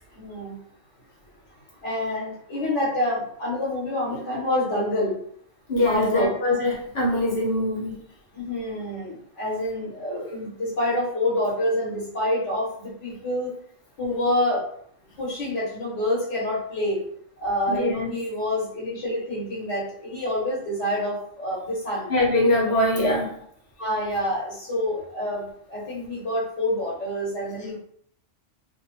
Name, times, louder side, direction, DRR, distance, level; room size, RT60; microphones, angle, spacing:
voice 1, 0.2-0.6 1.8-5.2 5.8-6.4 8.3-13.5 14.0-14.7 15.2-17.0 17.4-22.1 23.0-23.2 23.8-27.8, left 1 dB, 75° left, -7 dB, 1.3 m, -27 dB
voice 2, 5.7-8.0 17.7-18.1 22.1-23.3, left 1 dB, 35° left, -5 dB, 1.0 m, -23 dB
3.0 x 2.1 x 2.9 m, 0.66 s
omnidirectional pair, 1.2 m